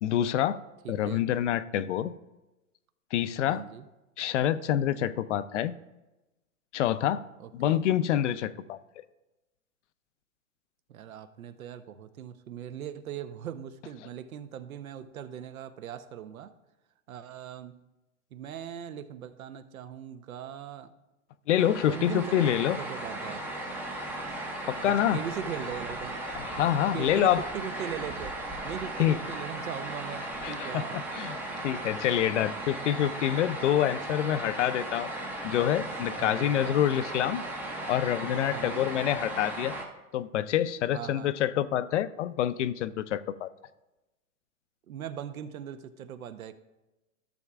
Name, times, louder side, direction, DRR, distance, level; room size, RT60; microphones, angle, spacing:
voice 1, 0.0-0.6 0.9-2.1 3.1-3.6 4.2-5.7 6.7-7.2 7.5-8.8 21.5-22.8 24.7-25.2 26.3-27.4 29.0-29.2 30.4-31.4 31.6-35.1 35.4-37.4 37.9-39.7 40.1-43.5, left 11 dB, 60° left, 14 dB, 0.5 m, -27 dB
voice 2, 0.8-1.2 3.5-3.9 7.4-7.8 10.9-16.5 17.1-17.8 18.3-20.9 21.8-23.5 24.8-26.6 26.9-28.4 28.6-31.0 36.2-36.6 38.5-38.9 40.9-41.3 44.9-46.5, right 9 dB, 75° right, 11 dB, 0.8 m, -40 dB
sound 1, 21.6-39.8, right 1 dB, 5° right, 0.5 m, -36 dB
14.0 x 6.9 x 2.4 m, 1.0 s
hypercardioid pair, 135°, 42 cm